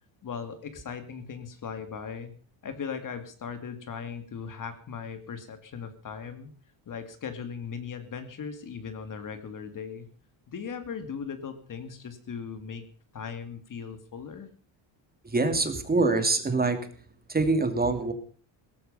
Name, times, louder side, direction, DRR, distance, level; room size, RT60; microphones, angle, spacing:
voice 1, 0.2-2.3 2.6-6.5 6.9-10.1 10.5-12.8 13.1-14.5, left 6 dB, 40° left, 9 dB, 2.4 m, -38 dB
voice 2, 15.2-16.8 17.3-18.1, right 3 dB, 20° right, 8 dB, 2.6 m, -24 dB
18.0 x 14.5 x 5.5 m, 0.42 s
cardioid pair, 155°, 50 cm